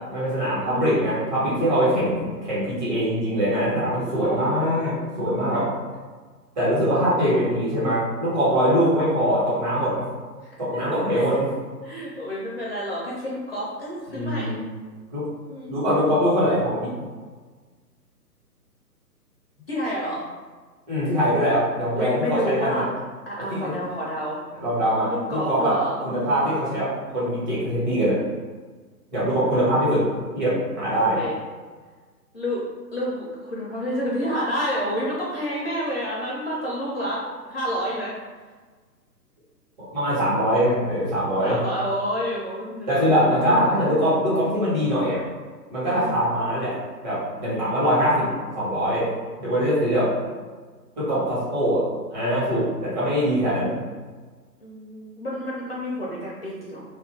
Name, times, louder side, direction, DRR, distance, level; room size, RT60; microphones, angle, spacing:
voice 1, 0.1-4.9 5.2-5.7 6.6-10.0 10.6-11.4 14.1-14.6 15.1-15.2 15.7-16.9 20.9-22.8 23.5-23.8 24.6-25.7 26.0-28.2 29.1-30.0 30.3-31.2 39.9-41.6 42.9-45.2 45.7-46.7 47.0-49.1 49.4-50.1 51.0-51.8 52.1-53.8, equal, 25° right, -9 dB, 1.2 m, -22 dB
voice 2, 0.6-1.0 1.9-2.4 4.0-5.7 10.4-11.3 11.8-14.6 15.4-15.7 19.7-20.3 21.9-22.9 23.3-24.4 25.1-26.8 29.6-29.7 30.9-31.3 32.3-32.6 32.9-38.2 41.4-44.0 45.9-46.2 49.9-50.3 54.6-56.8, equal, 40° left, -5 dB, 0.5 m, -30 dB
2.6 x 2.5 x 3.2 m, 1.4 s
figure-of-eight pair, 135°, 50 cm